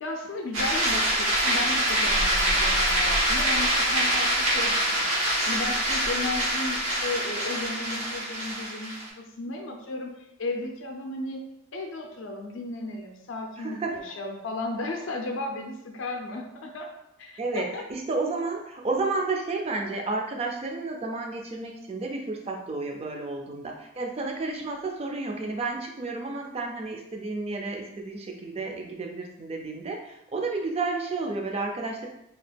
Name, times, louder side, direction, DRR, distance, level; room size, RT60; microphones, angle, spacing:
voice 1, 0.0-10.1 10.4-11.4 11.7-16.9 17.2-17.8, left 2 dB, 60° left, 2 dB, 0.4 m, -34 dB
sound 1, 0.5-9.1, right 1 dB, 90° right, 1.0 m, -25 dB
voice 2, 13.6-14.0 17.4-32.1, right 3 dB, 30° right, 2 dB, 0.4 m, -31 dB
2.9 x 2.3 x 3.3 m, 0.83 s
head